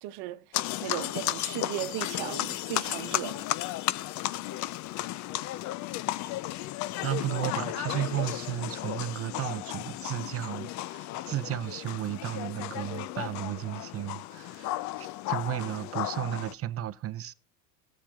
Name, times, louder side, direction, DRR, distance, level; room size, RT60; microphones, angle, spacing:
voice 1, 0.0-3.5, right 15 dB, 55° right, 1.1 m, -37 dB
sound 1, 0.5-16.5, left 15 dB, 40° left, 0.4 m, -34 dB
voice 2, 7.0-17.3, right 13 dB, 30° right, 0.7 m, -34 dB
19.5 x 7.2 x 2.3 m
supercardioid pair, 105°, 47 cm